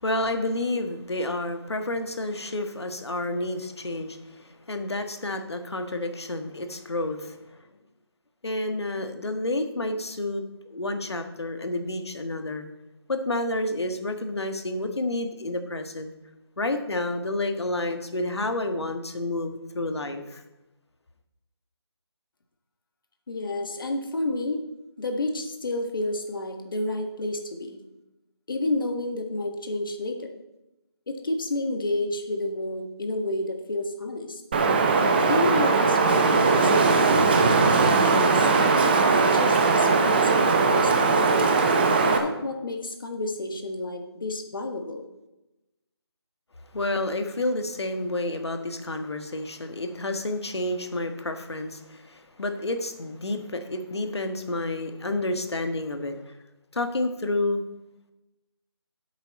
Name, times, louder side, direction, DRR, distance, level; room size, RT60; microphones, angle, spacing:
voice 1, 0.0-7.6 8.4-12.7 13.1-16.1 16.6-20.4 46.7-56.3 56.7-57.6, left 2 dB, 75° left, 6 dB, 1.6 m, -30 dB
voice 2, 23.3-24.6 25.0-27.8 28.5-30.3 31.1-34.4 35.3-38.5 39.1-41.3 42.1-45.1, left 2 dB, 50° left, 4 dB, 1.6 m, -30 dB
Wind, 34.5-42.2, right 4 dB, 20° right, 0.8 m, -20 dB
11.5 x 8.1 x 4.2 m, 0.98 s
figure-of-eight pair, 165°, 14 cm